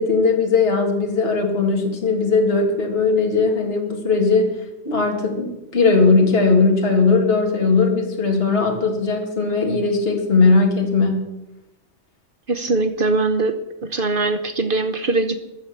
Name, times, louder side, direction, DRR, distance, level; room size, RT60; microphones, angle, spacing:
voice 1, 0.0-4.6 4.9-11.3, left 4 dB, 55° left, 2 dB, 2.3 m, -18 dB
voice 2, 12.5-13.6 13.8-15.4, right 3 dB, 50° right, 9 dB, 1.0 m, -21 dB
14.0 x 10.0 x 7.1 m, 0.95 s
omnidirectional pair, 1.2 m